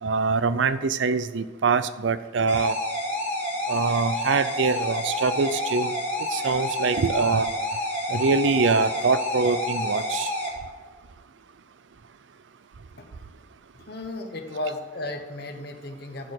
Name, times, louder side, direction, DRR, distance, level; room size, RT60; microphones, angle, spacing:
voice 1, 0.0-2.8 3.7-5.9 6.3-7.5 8.1-10.3, right 4 dB, 70° right, 14 dB, 0.5 m, -24 dB
sound 1, 2.5-10.5, left 1 dB, 10° left, 2.0 m, -29 dB
voice 2, 13.7-16.3, left 2 dB, 55° left, 5 dB, 1.1 m, -34 dB
12.0 x 4.4 x 8.0 m, 1.4 s
head